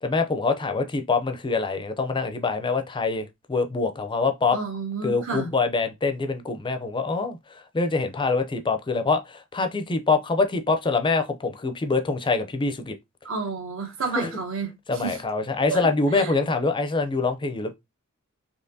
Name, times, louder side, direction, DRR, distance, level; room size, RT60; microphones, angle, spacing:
voice 1, 0.0-4.6 5.0-7.4 7.7-13.0 14.1-14.3 14.9-17.7, left 4 dB, 20° left, 0.5 m, -25 dB
voice 2, 4.5-5.5 13.2-15.2 15.7-16.3, right 4 dB, 65° right, 1.2 m, -31 dB
4.3 x 2.9 x 2.7 m
head